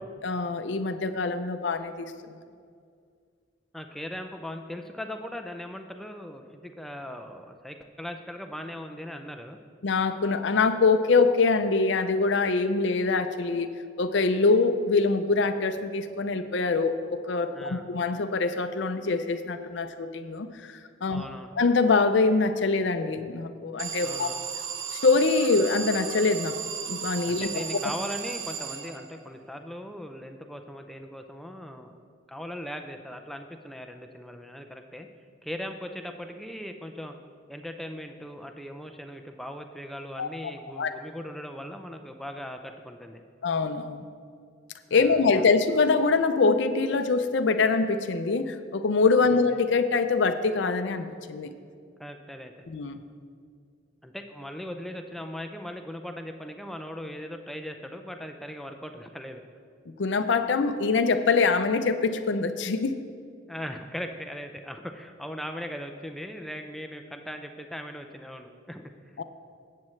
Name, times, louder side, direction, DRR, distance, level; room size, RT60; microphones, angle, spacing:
voice 1, 0.2-2.3 9.8-13.7 14.0-21.2 21.6-24.3 25.0-26.5 26.9-27.5 40.2-40.5 40.8-40.9 43.4-44.1 44.9-51.5 52.7-53.0 59.9-62.9 69.2-69.3, left 4 dB, 65° left, 9 dB, 0.5 m, -24 dB
voice 2, 3.7-9.6 17.5-17.9 21.1-21.6 24.0-24.4 27.3-32.0 32.3-35.1 35.4-37.1 37.5-43.2 44.9-45.4 49.2-49.5 52.0-52.6 54.0-59.4 63.5-69.2, equal, ahead, 5 dB, 0.5 m, -39 dB
Alarm, 23.8-29.3, right 8 dB, 85° right, 0.6 m, -35 dB
17.5 x 7.6 x 3.2 m, 2.2 s
head